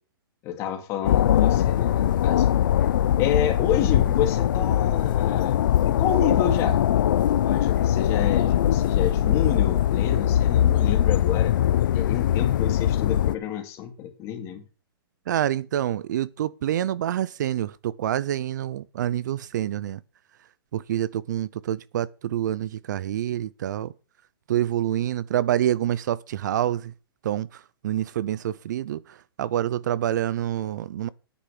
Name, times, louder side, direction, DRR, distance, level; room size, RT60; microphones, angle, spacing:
voice 1, 0.4-2.5 3.2-6.8 7.4-11.5 11.9-14.6, left 9 dB, 20° left, 2.3 m, -29 dB
sound 1, 1.0-13.3, left 11 dB, 55° left, 0.5 m, -21 dB
voice 2, 15.3-20.0 20.7-23.9 24.5-26.9 27.2-31.1, right 11 dB, 50° right, 0.5 m, -27 dB
10.0 x 9.0 x 5.8 m
hypercardioid pair, 165°, 13 cm